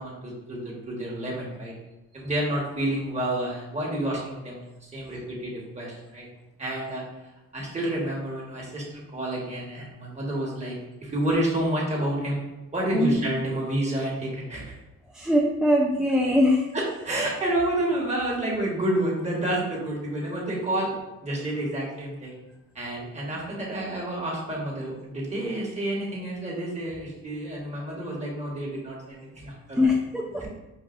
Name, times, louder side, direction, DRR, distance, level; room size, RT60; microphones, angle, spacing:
voice 1, 0.0-1.7 2.1-6.3 6.6-7.0 7.5-12.4 12.7-14.7 16.7-20.9 21.2-22.3 22.7-29.9 30.4-30.5, right 1 dB, 20° right, -4 dB, 1.4 m, -29 dB
voice 2, 15.1-16.6 29.8-30.4, left 1 dB, ahead, -1 dB, 0.4 m, -22 dB
5.4 x 2.6 x 2.5 m, 1.0 s
cardioid pair, 90°, 30 cm